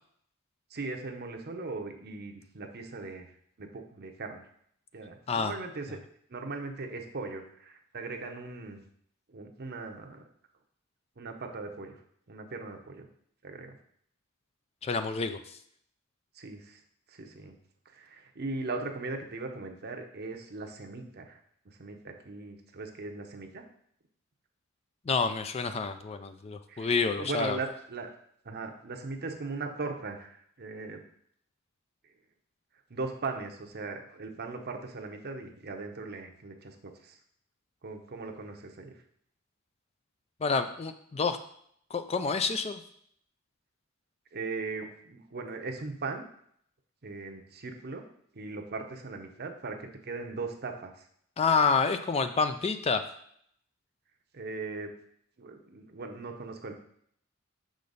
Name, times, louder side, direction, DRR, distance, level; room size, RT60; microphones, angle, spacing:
voice 1, 0.7-3.3 3.6-4.4 4.9-6.0 6.3-8.8 9.3-10.2 11.2-12.0 12.3-13.0 13.4-13.7 16.3-16.8 17.1-17.5 17.9-21.4 21.6-23.6 26.7-28.1 28.4-31.0 32.9-37.2 37.8-39.0 44.3-46.2 47.0-48.0 48.3-50.9 54.3-54.9 55.4-56.8, right 3 dB, 50° right, 4 dB, 0.8 m, -39 dB
voice 2, 14.8-15.4 25.1-27.6 40.4-41.4 41.9-42.8 51.4-53.0, left 4 dB, 30° left, 9 dB, 0.4 m, -28 dB
6.6 x 5.1 x 4.0 m, 0.67 s
head